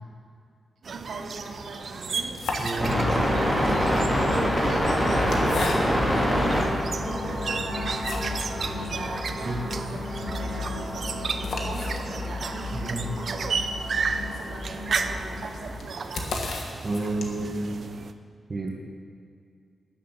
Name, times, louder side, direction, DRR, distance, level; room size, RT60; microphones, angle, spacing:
sound 1, 0.8-18.1, right 5 dB, 55° right, 0.6 m, -34 dB
voice 1, 0.8-2.4 2.7-5.7 6.1-14.0 14.3-16.3, right 3 dB, 90° right, -2 dB, 2.5 m, -41 dB
sound 2, 2.2-3.3 4.2-6.2 6.9-7.0 7.4-8.6 8.9-9.0 9.3-9.4 9.7-17.6, left 3 dB, 80° left, 1.7 m, -36 dB
voice 2, 2.6-2.9 9.4-9.6 12.7-13.0 16.8-17.8 18.5-18.8, right 2 dB, 35° right, -2 dB, 1.8 m, -30 dB
sound 3, 2.8-15.7, equal, 10° left, 3.4 m, -27 dB
13.0 x 11.0 x 6.1 m, 2.3 s
wide cardioid pair, 130°, 0 cm